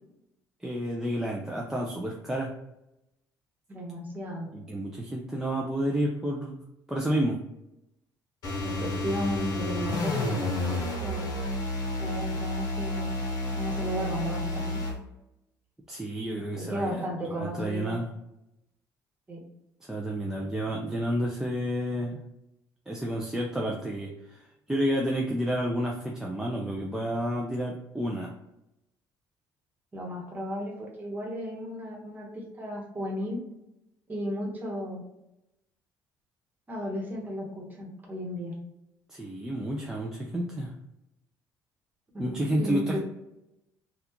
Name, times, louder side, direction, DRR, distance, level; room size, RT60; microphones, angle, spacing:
voice 1, 0.6-2.5 4.5-6.6 6.9-7.4 15.9-18.1 19.8-22.2 22.9-28.3 39.1-40.7 42.2-43.0, equal, 5° right, -2 dB, 0.4 m, -30 dB
voice 2, 3.7-4.5 8.6-11.2 12.0-13.1 13.5-14.8 16.6-17.9 19.3-19.4 29.9-33.4 34.1-35.0 36.7-38.5 42.1-43.0, equal, 25° right, -2 dB, 1.2 m, -34 dB
sound 1, 8.4-15.0, left 1 dB, 55° left, 1.1 m, -31 dB
3.5 x 2.4 x 2.9 m, 0.88 s
cardioid pair, 110°, 8 cm